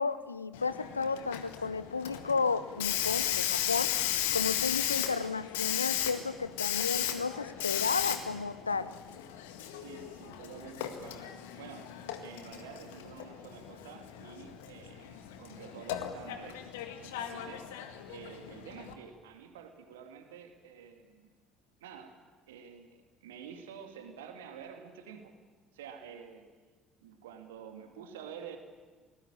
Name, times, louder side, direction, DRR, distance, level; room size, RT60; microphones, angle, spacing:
voice 1, 0.0-3.9 4.3-8.9, left 4 dB, 85° left, 15 dB, 0.8 m, -33 dB
Hiss, 0.5-18.9, left 11 dB, 70° left, 1.9 m, -36 dB
voice 2, 9.8-16.6 17.0-21.3 21.8-22.2 22.5-25.3 25.7-26.5 27.0-28.6, right 7 dB, 70° right, 5 dB, 2.4 m, -49 dB
27.5 x 19.5 x 8.9 m, 1.4 s
figure-of-eight pair, 55°, 0 cm